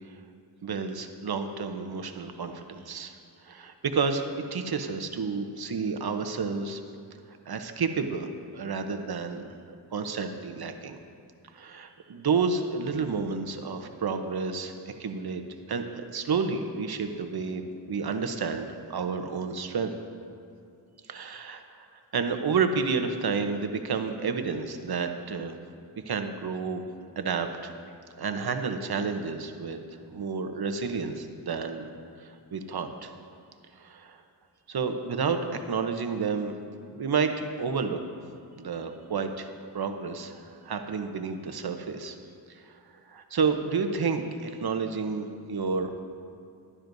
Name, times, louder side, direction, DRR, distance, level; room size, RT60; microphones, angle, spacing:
voice 1, 0.6-3.2 3.4-4.2 4.5-6.8 7.5-8.3 8.5-9.5 9.9-11.0 11.5-14.7 15.0-15.4 15.7-19.9 21.1-21.9 22.1-25.6 26.1-26.8 27.2-27.7 28.2-29.8 30.1-31.9 32.2-33.1 33.8-34.2 34.7-36.5 36.9-38.0 38.6-42.2 42.5-42.6 43.1-46.1, right 5 dB, 60° right, 6 dB, 0.9 m, -30 dB
15.0 x 11.5 x 2.7 m, 2.5 s
wide cardioid pair, 70°, 42 cm